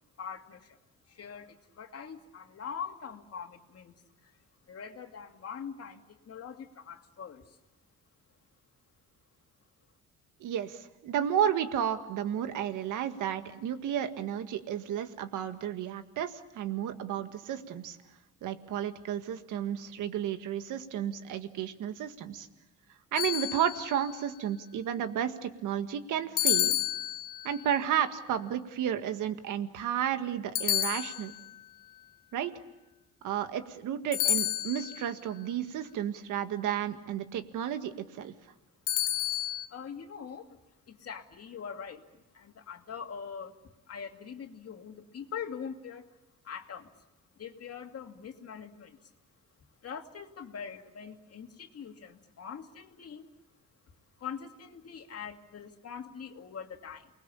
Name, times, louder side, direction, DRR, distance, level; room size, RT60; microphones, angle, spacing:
voice 1, 0.2-0.8 1.1-4.3 4.7-7.6 39.7-40.6 40.9-43.5 43.9-46.1 46.4-46.9 47.4-49.1 49.8-53.3 54.2-57.1, left 7 dB, 50° left, 5 dB, 2.5 m, -43 dB
voice 2, 10.4-18.0 18.4-22.5 23.1-26.8 27.4-31.3 32.3-32.5 33.2-38.3, right 9 dB, 85° right, 8 dB, 1.8 m, -32 dB
sound 1, 23.2-24.1 26.4-27.6 30.6-31.6 34.1-35.1 38.9-39.7, left 13 dB, 80° left, 1.1 m, -30 dB
29.0 x 20.5 x 8.6 m, 1.0 s
cardioid pair, 90°, 30 cm